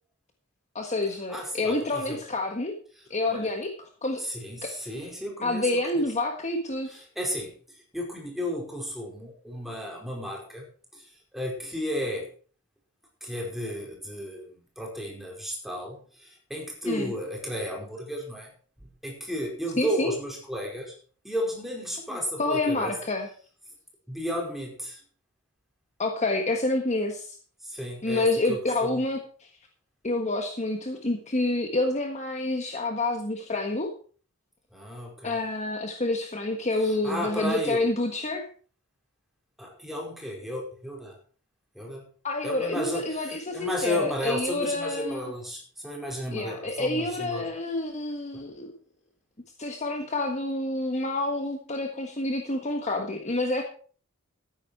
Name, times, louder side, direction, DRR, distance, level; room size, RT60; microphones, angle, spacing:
voice 1, 0.7-2.7 3.1-4.2 4.6-4.7 5.4-7.0 16.8-17.1 19.8-20.1 22.1-23.3 26.0-27.4 28.0-29.5 30.0-33.9 35.2-38.5 42.2-45.2 46.3-48.7 49.6-53.6, left 2 dB, 30° left, 4 dB, 1.5 m, -28 dB
voice 2, 1.3-2.2 3.0-3.5 4.2-5.7 5.9-6.0 6.9-10.7 10.9-12.3 13.2-18.5 18.8-20.9 21.2-22.9 24.1-25.0 27.6-29.0 34.7-35.4 36.8-37.8 39.6-41.2 41.7-42.1 42.4-47.5 48.3-48.4, equal, ahead, -1 dB, 4.8 m, -34 dB
14.0 x 10.5 x 4.6 m, 0.43 s
head